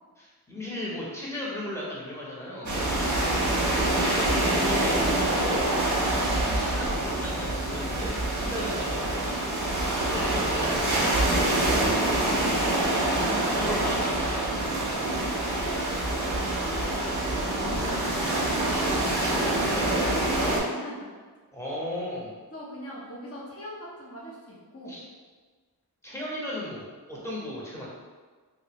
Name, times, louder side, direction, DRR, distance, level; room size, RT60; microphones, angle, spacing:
voice 1, 0.2-2.8 3.7-5.7 6.6-9.4 10.0-12.4 13.2-14.8 15.9-16.0 18.7-20.3 21.5-22.3 24.9-25.0 26.0-27.9, left 1 dB, 5° left, -6 dB, 1.0 m, -36 dB
sound 1, 2.7-20.6, right 1 dB, 50° right, 0.8 m, -26 dB
voice 2, 2.8-3.8 9.6-10.4 15.2-18.8 20.3-21.1 22.5-24.9, equal, 35° left, -6 dB, 1.0 m, -41 dB
3.0 x 2.6 x 3.0 m, 1.4 s
wide cardioid pair, 50°, 39 cm